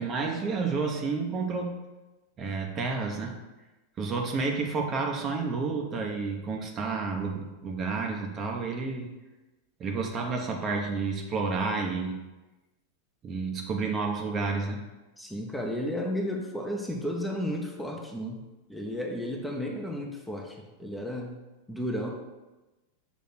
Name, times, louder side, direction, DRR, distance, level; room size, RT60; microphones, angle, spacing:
voice 1, 0.0-1.7 2.4-3.3 4.0-9.1 9.8-12.2 13.2-14.8, right 4 dB, 30° right, 2 dB, 0.9 m, -30 dB
voice 2, 15.2-18.4 18.7-21.4 21.7-22.1, equal, 5° left, 0 dB, 0.9 m, -33 dB
6.1 x 3.1 x 5.8 m, 1.1 s
figure-of-eight pair, 90°, 0 cm